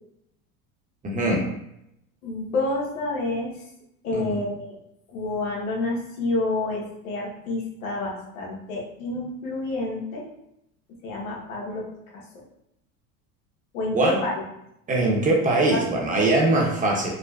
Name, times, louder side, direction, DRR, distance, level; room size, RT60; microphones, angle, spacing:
voice 1, 1.0-1.4 4.1-4.4 13.9-14.2 14.9-17.1, right 2 dB, 20° right, -1 dB, 0.8 m, -22 dB
voice 2, 2.2-3.5 4.0-4.8 5.1-10.2 11.0-11.9 13.7-14.4 15.7-15.9, left 2 dB, 90° left, -3 dB, 1.1 m, -28 dB
4.8 x 2.1 x 2.3 m, 0.81 s
supercardioid pair, 115°, 41 cm